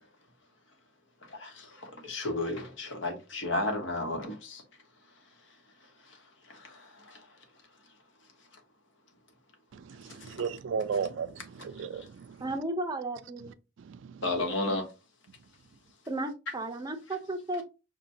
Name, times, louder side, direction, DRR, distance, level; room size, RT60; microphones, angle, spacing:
voice 1, 1.2-4.6 6.0-6.2 6.5-7.4 10.1-10.4 14.2-14.9, left 2 dB, 75° left, 1.1 m, -34 dB
voice 2, 9.7-12.4 13.8-14.2, right 6 dB, 80° right, 0.4 m, -35 dB
voice 3, 12.4-13.5 16.1-17.6, right 2 dB, 20° right, 0.5 m, -34 dB
5.8 x 2.2 x 2.6 m
head